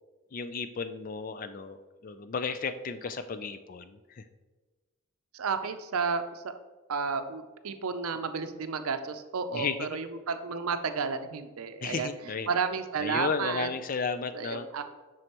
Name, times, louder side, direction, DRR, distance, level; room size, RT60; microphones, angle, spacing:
voice 1, 0.3-1.8 2.0-4.2 9.5-10.0 11.8-12.5 13.0-14.7, left 5 dB, 40° left, 11 dB, 0.4 m, -33 dB
voice 2, 5.3-6.5 6.9-12.1 12.5-13.7 14.3-14.8, right 5 dB, 80° right, 9 dB, 0.6 m, -32 dB
7.7 x 6.2 x 3.0 m, 1.2 s
head